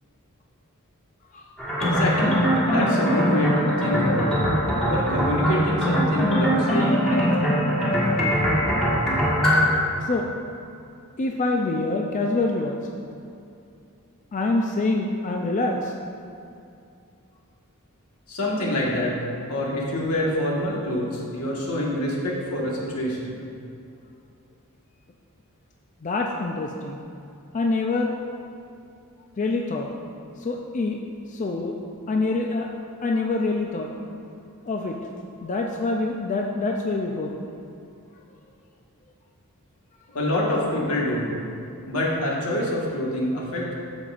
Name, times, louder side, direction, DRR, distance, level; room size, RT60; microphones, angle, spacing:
sound 1, 1.6-9.7, equal, 5° left, 1.4 m, -22 dB
voice 1, 1.8-4.5 4.8-7.5 18.3-19.1 19.4-23.4 40.1-41.3 41.9-43.7, left 1 dB, 85° left, -4 dB, 1.5 m, -26 dB
voice 2, 11.2-12.8 14.3-15.9 26.0-27.0 27.5-28.1 29.4-29.9 30.4-31.0 31.3-31.7 32.1-32.7 33.0-33.9 34.7-35.0 35.4-37.4, left 3 dB, 35° left, 1 dB, 0.4 m, -25 dB
8.8 x 6.9 x 2.5 m, 2.6 s
head